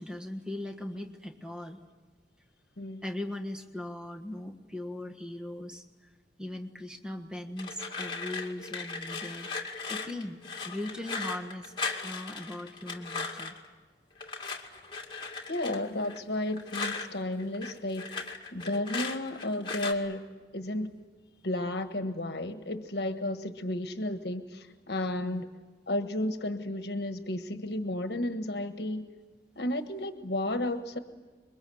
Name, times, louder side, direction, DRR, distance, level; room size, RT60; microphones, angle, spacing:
voice 1, 0.0-1.8 3.0-5.8 6.4-10.4 10.6-11.7 12.0-13.5 25.2-25.4, left 1 dB, 5° right, 4 dB, 1.5 m, -39 dB
sound 1, 7.6-13.7 14.2-17.1 17.4-19.9, left 4 dB, 25° left, 2.3 m, -37 dB
voice 2, 15.5-18.1 18.5-20.2 20.5-20.9 21.4-25.5 25.9-29.1 29.6-31.0, left 1 dB, 60° left, 8 dB, 1.4 m, -32 dB
27.0 x 23.0 x 7.9 m, 1.3 s
head